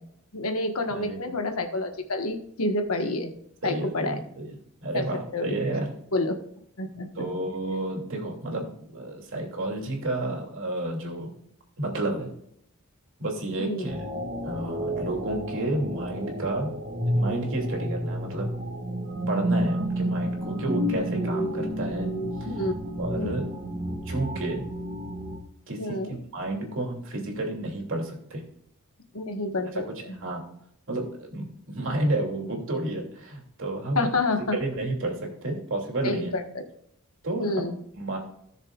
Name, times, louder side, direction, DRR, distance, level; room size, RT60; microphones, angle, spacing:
voice 1, 0.3-3.3 3.6-4.2 4.9-5.1 5.3-5.6 6.1-6.4 6.8-7.3 13.6-13.9 22.5-22.7 23.1-23.3 25.8-26.2 29.1-30.2 33.9-34.6 36.0-36.4 37.4-37.8, left 2 dB, 70° left, 5 dB, 1.4 m, -28 dB
voice 2, 0.9-1.3 3.6-5.9 7.2-11.3 11.8-12.3 13.2-14.0 14.4-16.8 17.0-18.5 19.3-22.1 22.4-22.6 23.0-23.5 24.1-24.6 25.7-28.4 29.7-30.5 30.9-34.1 34.5-36.3 37.2-37.6 37.9-38.2, right 2 dB, 60° right, 0 dB, 2.7 m, -31 dB
sound 1, 13.9-25.4, equal, 25° right, 2.0 m, -30 dB
17.0 x 6.6 x 2.4 m, 0.73 s
head